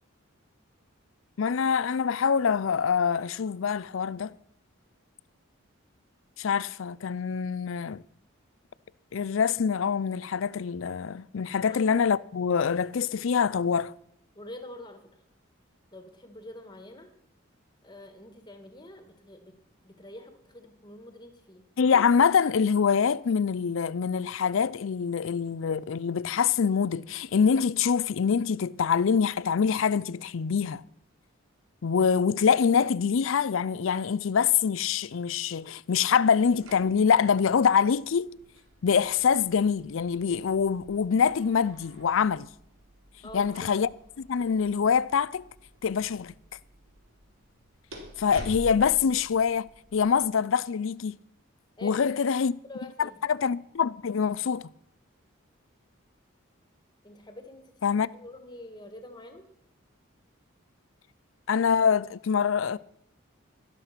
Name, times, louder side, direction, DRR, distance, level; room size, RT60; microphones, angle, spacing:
voice 1, 1.4-4.3 6.4-8.0 9.1-13.9 21.8-30.8 31.8-38.4 38.8-42.5 43.3-43.9 44.2-45.4 45.8-46.3 48.2-51.2 51.8-52.5 53.0-54.7 57.8-58.1 61.5-62.8, left 6 dB, 70° left, 0.4 m, -25 dB
voice 2, 14.4-15.0 15.9-17.1 17.8-19.5 19.8-21.6 43.2-43.7 51.8-52.4 52.6-53.2 57.0-57.8 58.1-59.4, left 1 dB, 20° left, 1.7 m, -45 dB
sound 1, 36.1-50.1, right 1 dB, 80° right, 3.5 m, -49 dB
12.5 x 12.0 x 5.8 m
head